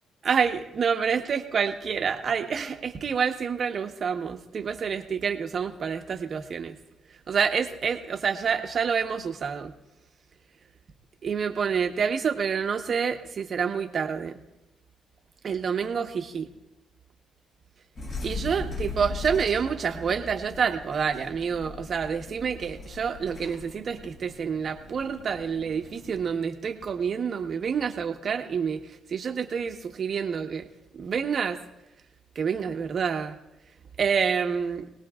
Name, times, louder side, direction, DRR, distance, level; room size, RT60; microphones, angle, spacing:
voice 1, 0.2-6.7 7.3-9.7 11.2-14.4 15.4-16.5 18.2-30.7 30.9-31.6 32.3-33.4 34.0-34.9, right 6 dB, 50° right, 4 dB, 1.3 m, -28 dB
sound 1, 17.9-26.2, left 2 dB, 50° left, 7.7 m, -39 dB
27.5 x 19.0 x 2.5 m, 0.92 s
cardioid pair, 90°, 0 cm